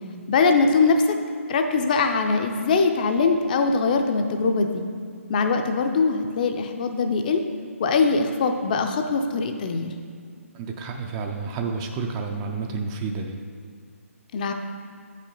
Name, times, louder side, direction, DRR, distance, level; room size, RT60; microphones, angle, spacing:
voice 1, 0.3-1.2 1.5-4.8 5.3-7.4 7.8-9.9 14.3-14.5, left 4 dB, 35° left, 5 dB, 0.5 m, -22 dB
voice 2, 10.5-13.4, right 4 dB, 20° right, 3 dB, 0.4 m, -30 dB
8.1 x 5.3 x 3.8 m, 2.1 s
figure-of-eight pair, 140°, 8 cm